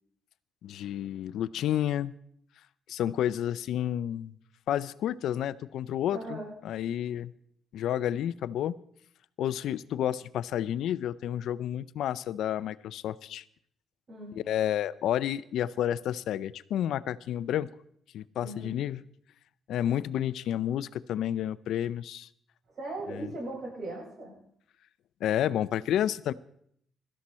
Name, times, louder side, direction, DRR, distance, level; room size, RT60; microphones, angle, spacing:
voice 1, 0.6-2.1 2.9-4.3 4.7-6.4 6.6-7.3 7.7-8.7 9.4-13.4 14.5-17.7 18.1-19.0 19.7-22.3 23.1-23.3 25.2-26.3, left 11 dB, 80° left, 17 dB, 0.5 m, -30 dB
voice 2, 6.1-6.5 14.1-14.3 18.4-18.7 22.7-24.3, right 2 dB, 50° right, -3 dB, 8.0 m, -38 dB
17.5 x 13.0 x 4.3 m, 0.69 s
cardioid pair, 90°, 0 cm